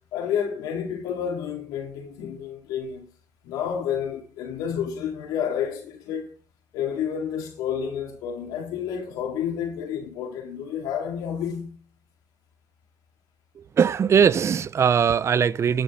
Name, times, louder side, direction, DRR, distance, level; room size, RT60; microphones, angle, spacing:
voice 1, 0.1-3.1 3.4-6.3 6.7-11.8, left 8 dB, 85° left, 4.2 m, -30 dB
voice 2, 13.6-15.8, right 7 dB, 45° right, 0.7 m, -20 dB
19.5 x 7.0 x 4.0 m
supercardioid pair, 75°, 6 cm